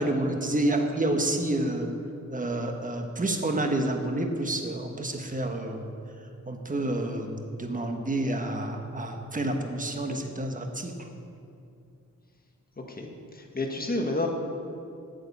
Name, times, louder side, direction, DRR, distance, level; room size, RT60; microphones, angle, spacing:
voice 1, 0.0-1.9 2.3-5.9 6.5-10.9, right 1 dB, 25° right, 4 dB, 1.3 m, -29 dB
voice 2, 12.9-14.3, left 2 dB, 30° left, 2 dB, 1.5 m, -30 dB
9.0 x 7.8 x 7.0 m, 2.5 s
cardioid pair, 75°, 31 cm